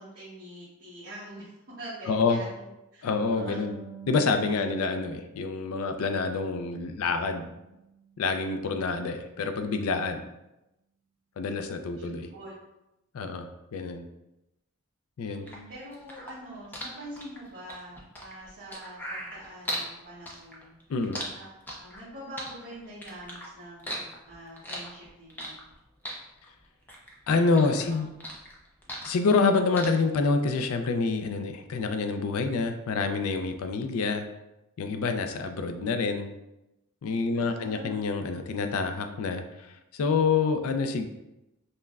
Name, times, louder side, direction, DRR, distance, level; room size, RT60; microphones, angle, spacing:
voice 1, 0.0-2.7 2.9-3.6 12.0-12.5 15.2-20.7 21.3-25.6 27.4-28.0 29.0-29.1 37.3-38.0, right 1 dB, 45° right, -10 dB, 0.9 m, -45 dB
voice 2, 2.1-2.4 3.0-3.7 4.1-7.5 8.2-10.2 11.4-12.3 13.1-14.0 15.2-15.4 20.9-21.2 27.3-28.1 29.0-34.2 34.8-36.3 37.0-41.1, left 4 dB, 75° left, 7 dB, 0.4 m, -27 dB
Harp, 3.4-6.8 7.1-8.2, right 5 dB, 90° right, 0.5 m, -46 dB
sound 1, 15.5-19.9 20.3-22.1 22.4-23.5 23.8-25.7 26.0-27.1 27.4-29.5 29.8-29.9, equal, 10° left, 0.5 m, -37 dB
5.4 x 2.1 x 2.3 m, 0.93 s
head